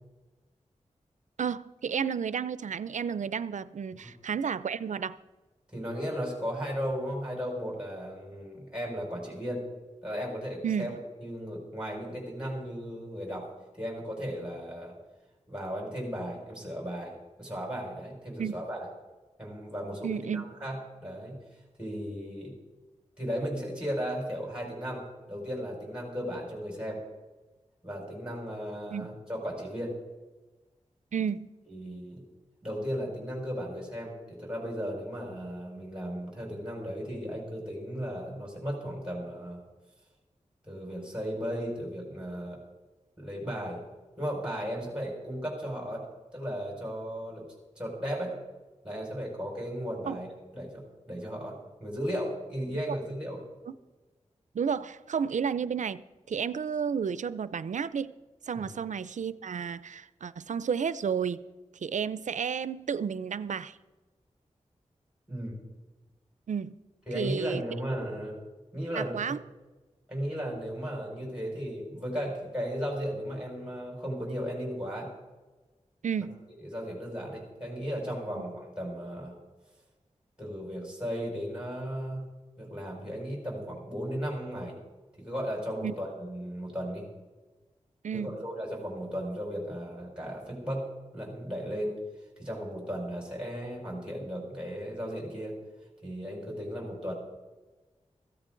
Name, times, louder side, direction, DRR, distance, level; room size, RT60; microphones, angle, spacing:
voice 1, 1.4-5.2 10.6-11.0 18.4-18.6 20.0-20.5 28.9-29.1 31.1-31.5 50.1-50.2 54.5-58.1 58.5-61.4 61.7-63.8 66.5-66.8 67.1-67.6 68.9-69.4 76.0-76.5 85.8-85.9 88.0-88.4, right 7 dB, 80° right, 0.5 m, -32 dB
voice 2, 5.7-9.6 10.0-14.9 15.5-18.9 19.4-21.4 21.8-22.5 23.2-27.0 27.8-30.0 31.7-32.2 32.6-39.6 40.6-42.6 43.2-43.8 44.2-46.1 46.3-47.4 47.8-48.4 48.8-50.3 50.5-53.4 58.5-58.7 65.3-65.5 67.1-68.4 68.7-69.3 70.1-75.1 76.5-79.4 80.4-82.2 82.6-84.8 85.2-87.0 88.1-90.9 91.1-92.0 92.4-95.5 96.0-97.1, equal, 5° right, 5.5 m, -35 dB
16.0 x 14.5 x 3.9 m
wide cardioid pair, 65°, 12 cm